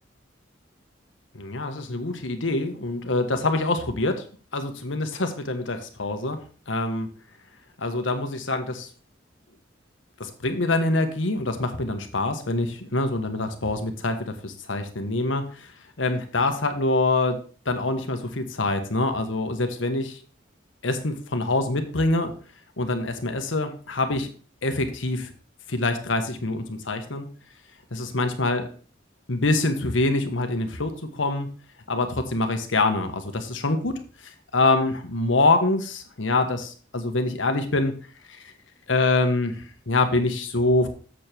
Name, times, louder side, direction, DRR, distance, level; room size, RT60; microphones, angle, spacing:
voice 1, 1.3-4.2 4.5-6.4 6.7-7.1 7.8-8.9 10.2-17.4 17.6-20.2 20.8-22.3 22.8-24.3 24.6-25.3 25.7-27.3 27.9-28.6 29.3-31.5 31.9-37.9 38.3-38.5 38.9-40.9, left 2 dB, 85° left, 6 dB, 1.4 m, -25 dB
7.6 x 7.0 x 4.4 m, 0.40 s
head